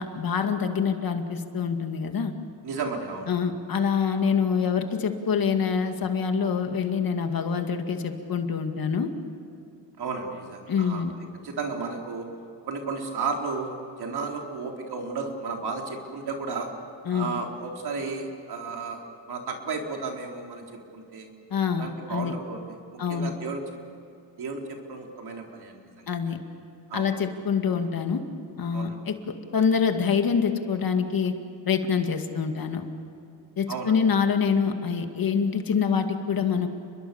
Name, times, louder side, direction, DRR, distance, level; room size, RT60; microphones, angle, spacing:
voice 1, 0.0-2.3 3.3-9.1 10.7-11.1 17.1-17.4 21.5-22.4 23.0-23.3 26.1-26.4 26.9-28.2 28.6-31.4 31.7-32.9 33.6-36.7, left 6 dB, 50° left, 6 dB, 2.2 m, -25 dB
voice 2, 2.6-3.3 10.0-11.0 11.4-12.3 12.6-16.7 17.1-19.0 19.3-20.6 20.9-21.3 21.8-22.6 22.9-23.6 24.4-26.1 26.9-27.1 28.7-29.0 33.7-33.9, right 4 dB, 60° right, 1 dB, 4.2 m, -33 dB
30.0 x 22.0 x 7.2 m, 2.6 s
cardioid pair, 110°, 44 cm